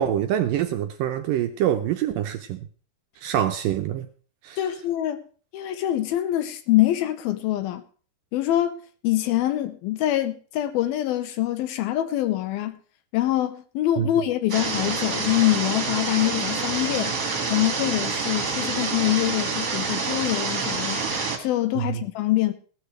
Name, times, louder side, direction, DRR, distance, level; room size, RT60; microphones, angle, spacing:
voice 1, 0.0-2.7 3.2-4.1 4.4-4.6 14.0-14.1 21.8-22.0, right 10 dB, 75° right, 2.1 m, -25 dB
voice 2, 4.6-5.2 5.5-7.8 8.3-12.8 13.1-17.1 17.5-21.1 21.4-22.5, left 14 dB, 75° left, 2.5 m, -24 dB
sound 1, 14.5-21.4, right 4 dB, 30° right, 1.9 m, -27 dB
16.0 x 13.0 x 3.3 m
omnidirectional pair, 4.7 m